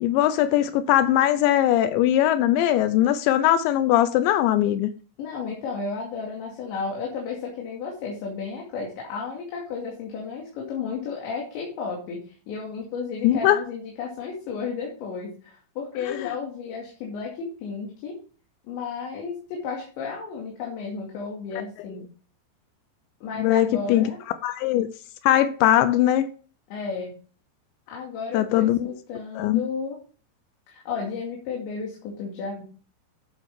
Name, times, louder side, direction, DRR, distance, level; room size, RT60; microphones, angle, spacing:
voice 1, 0.0-4.9 13.2-13.6 16.1-16.2 23.4-24.1 24.4-24.9 25.2-26.3 28.3-28.9 29.4-29.6, left 12 dB, 90° left, 2.5 m, -20 dB
voice 2, 5.2-18.2 18.7-22.0 23.2-24.2 26.7-27.1 27.9-30.0 30.7-32.6, left 5 dB, 65° left, 4.5 m, -33 dB
12.0 x 7.8 x 3.7 m
omnidirectional pair, 6.0 m